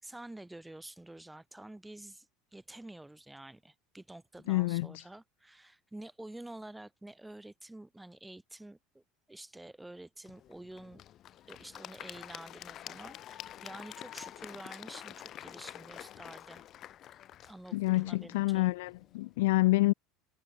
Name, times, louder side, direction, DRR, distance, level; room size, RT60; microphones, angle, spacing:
voice 1, 0.0-11.0 11.5-16.7 17.4-18.7, right 1 dB, 5° right, 6.5 m, -49 dB
voice 2, 4.5-5.0 17.7-19.9, left 20 dB, 85° left, 0.5 m, -28 dB
Applause / Crowd, 10.2-19.3, left 12 dB, 45° left, 1.7 m, -48 dB
supercardioid pair, 105°, 0 cm